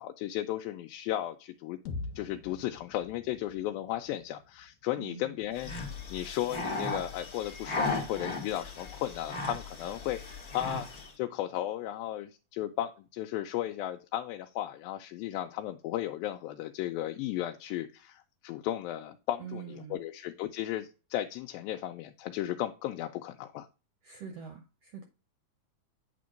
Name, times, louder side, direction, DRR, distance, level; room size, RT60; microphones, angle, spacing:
voice 1, 0.0-1.8 2.2-5.7 6.1-10.2 10.5-10.9 11.2-23.7, left 13 dB, 90° left, 5 dB, 2.3 m, -35 dB
sound 1, 1.9-5.8, left 3 dB, 65° left, 2.2 m, -45 dB
voice 2, 5.0-5.4 19.4-20.0 24.0-25.0, right 7 dB, 70° right, 5 dB, 1.5 m, -44 dB
sound 2, 5.5-11.1, left 3 dB, 35° left, 1.7 m, -36 dB
8.6 x 3.7 x 5.1 m, 0.32 s
omnidirectional pair, 4.0 m